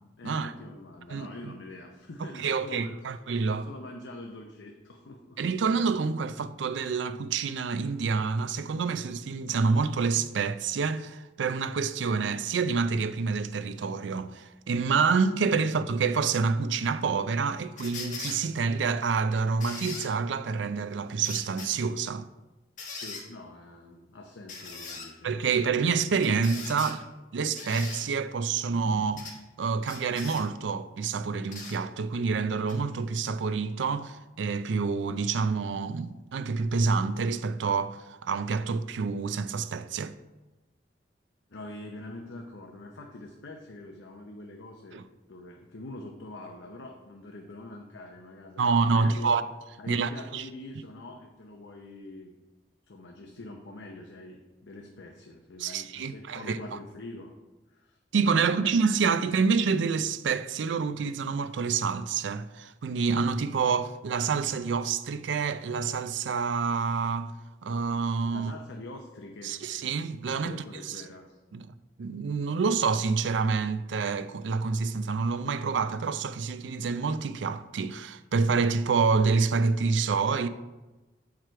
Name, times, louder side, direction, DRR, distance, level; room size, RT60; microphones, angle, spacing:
voice 1, 0.2-3.0 3.5-5.4 23.0-25.5 41.5-45.0 45.3-49.3 49.8-52.3 52.9-57.3 57.7-58.4 68.3-69.5 70.4-71.4, left 2 dB, 90° left, 0.7 m, -44 dB
voice 2, 2.2-3.7 5.4-22.3 25.2-40.1 44.9-45.0 48.6-49.4 49.9-50.5 55.6-56.6 58.1-67.3 67.6-68.5 69.4-70.6 71.5-71.7 72.0-80.5, right 5 dB, 85° right, 0.4 m, -27 dB
sound 1, 17.8-18.4 19.6-20.1 21.2-21.7 22.8-23.2 24.5-25.1 26.2-27.0 27.6-28.0 29.2-29.4 29.9-30.4 31.5-31.8 32.7-32.8, left 4 dB, 40° left, 1.2 m, -40 dB
7.5 x 4.8 x 4.6 m
head